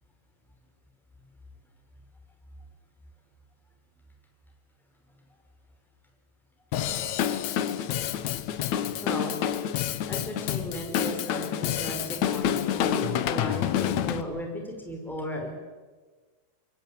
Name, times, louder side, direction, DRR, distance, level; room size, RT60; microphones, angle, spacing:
Drum kit / Drum, 6.7-14.2, left 10 dB, 85° left, 1.6 m, -28 dB
voice 1, 9.0-9.6 10.1-15.5, equal, ahead, 2 dB, 4.9 m, -36 dB
26.0 x 22.5 x 9.1 m, 1.4 s
omnidirectional pair, 4.9 m